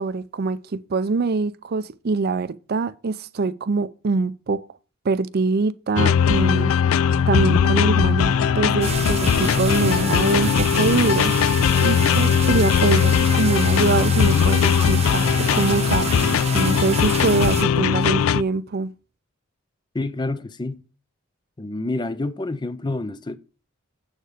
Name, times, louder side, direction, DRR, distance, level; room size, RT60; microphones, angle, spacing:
voice 1, 0.0-4.6 5.0-6.7 7.3-11.3 11.8-18.9, right 4 dB, 45° right, 0.5 m, -24 dB
sound 1, 6.0-18.4, left 7 dB, 75° left, 0.3 m, -19 dB
sound 2, 8.8-17.6, right 3 dB, 30° right, 1.0 m, -29 dB
voice 2, 19.9-20.8 21.6-23.4, left 2 dB, 20° left, 0.5 m, -28 dB
7.9 x 6.5 x 5.0 m
head